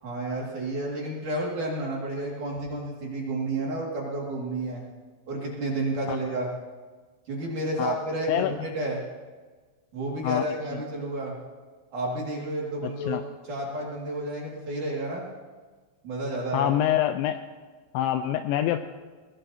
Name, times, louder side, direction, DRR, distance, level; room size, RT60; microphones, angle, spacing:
voice 1, 0.0-4.8 5.3-6.5 7.3-9.0 9.9-11.4 11.9-13.2 13.5-15.3 16.0-16.8, right 2 dB, 50° right, -3 dB, 2.9 m, -31 dB
voice 2, 12.8-13.2 16.5-17.4 17.9-18.8, left 12 dB, 85° left, 8 dB, 2.7 m, -25 dB
20.0 x 19.0 x 2.8 m, 1.4 s
omnidirectional pair, 5.8 m